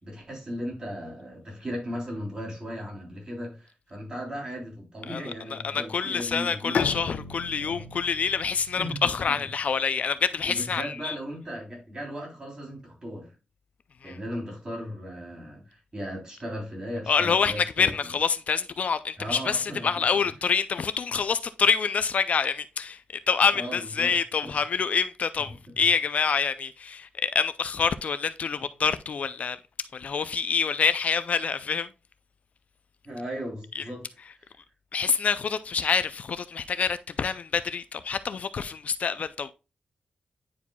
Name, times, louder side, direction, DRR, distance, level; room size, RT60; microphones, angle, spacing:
voice 1, 0.0-6.9 7.6-7.8 8.8-9.1 10.4-13.3 14.0-17.9 19.2-20.3 23.5-24.2 24.4-24.5 33.0-34.1, equal, 30° right, 3.2 m, -37 dB
voice 2, 5.1-11.2 14.0-14.2 17.1-23.0 23.3-29.6 29.9-31.9 33.7-33.8 34.9-39.5, left 6 dB, 55° left, 0.3 m, -26 dB
Bowed string instrument, 6.7-10.4, left 6 dB, 75° left, 0.9 m, -35 dB
9.9 x 4.8 x 2.2 m
wide cardioid pair, 160°, 3 cm